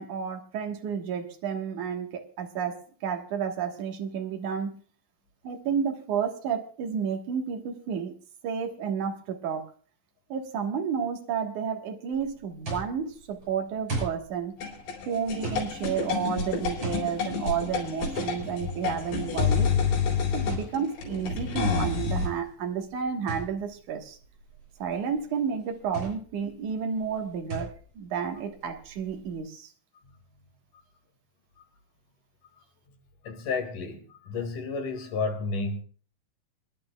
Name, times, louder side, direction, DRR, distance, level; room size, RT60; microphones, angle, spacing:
voice 1, 0.0-4.8 5.4-8.1 8.4-9.7 10.3-14.6 15.1-19.7 20.3-24.2 24.8-29.7, right 7 dB, 65° right, 2.0 m, -31 dB
sound 1, 12.1-29.4, right 2 dB, 30° right, 7.0 m, -41 dB
sound 2, 14.6-22.3, left 5 dB, 80° left, 6.3 m, -28 dB
voice 2, 33.2-35.8, left 4 dB, 50° left, 3.1 m, -31 dB
27.0 x 11.0 x 2.3 m
omnidirectional pair, 5.4 m